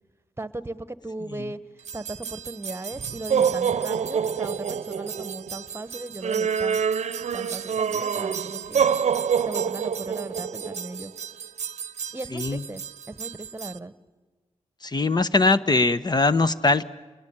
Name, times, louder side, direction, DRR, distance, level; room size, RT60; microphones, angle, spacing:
voice 1, 0.4-1.6 1.9-6.9 7.3-8.9 9.4-11.1 12.1-13.9, right 2 dB, 20° right, 15 dB, 1.3 m, -37 dB
sound 1, 1.8-13.8, right 7 dB, 70° right, 0.8 m, -27 dB
voice 2, 12.3-12.6 14.8-16.8, left 3 dB, 35° left, 12 dB, 1.0 m, -21 dB
28.5 x 21.0 x 8.8 m, 1.3 s
cardioid pair, 55°, 12 cm